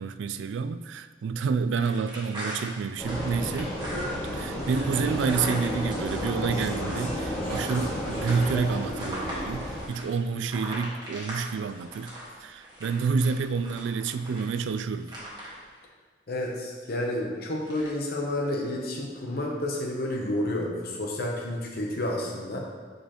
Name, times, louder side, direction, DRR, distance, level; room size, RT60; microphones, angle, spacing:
voice 1, 0.0-3.7 4.3-12.1 12.4-15.1, right 5 dB, 70° right, 12 dB, 0.3 m, -29 dB
sound 1, 1.8-15.8 17.6-17.9, right 1 dB, 25° right, 1.5 m, -40 dB
Vehicle, 3.0-9.9, equal, 10° left, 1.2 m, -32 dB
voice 2, 16.3-22.6, left 1 dB, 50° left, -1 dB, 0.8 m, -30 dB
6.6 x 5.1 x 3.0 m, 1.5 s
head